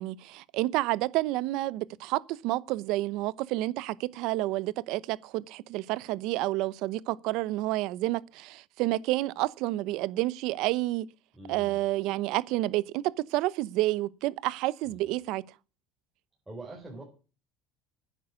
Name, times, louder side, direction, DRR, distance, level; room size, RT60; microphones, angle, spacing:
voice 1, 0.0-11.1 11.5-13.0 13.3-15.4, right 17 dB, 65° right, 0.8 m, -29 dB
voice 2, 11.3-11.8 14.9-15.1 16.5-17.0, right 2 dB, 10° right, 4.2 m, -44 dB
10.0 x 8.2 x 9.4 m
cardioid pair, 150°, 0 cm